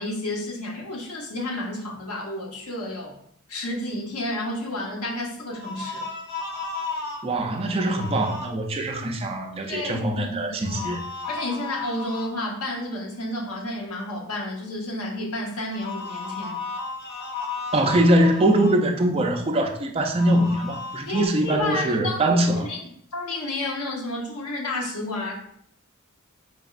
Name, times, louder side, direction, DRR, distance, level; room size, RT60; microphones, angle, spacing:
voice 1, 0.0-3.2 3.5-6.0 9.6-10.8 11.3-16.6 21.0-22.8 23.1-25.3, left 2 dB, 85° left, 1.0 m, -31 dB
sound 1, 5.5-7.2 7.7-8.5 10.6-12.3 15.7-18.8 20.1-21.3, left 4 dB, 45° left, 0.8 m, -34 dB
voice 2, 7.2-11.0 17.7-22.7, right 1 dB, 25° right, 0.4 m, -22 dB
4.0 x 3.4 x 2.4 m
head